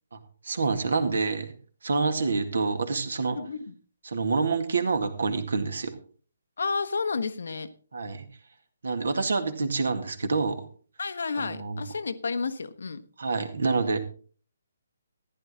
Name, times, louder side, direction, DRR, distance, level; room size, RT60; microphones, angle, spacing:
voice 1, 0.1-1.5 1.8-3.4 4.0-5.9 7.9-8.3 8.8-10.6 11.4-11.8 13.2-14.0, right 4 dB, 60° right, 8 dB, 2.0 m, -27 dB
voice 2, 3.3-3.7 6.6-7.7 11.0-13.0, left 4 dB, 60° left, 11 dB, 1.1 m, -31 dB
14.5 x 11.0 x 3.8 m, 0.41 s
figure-of-eight pair, 135°, 0 cm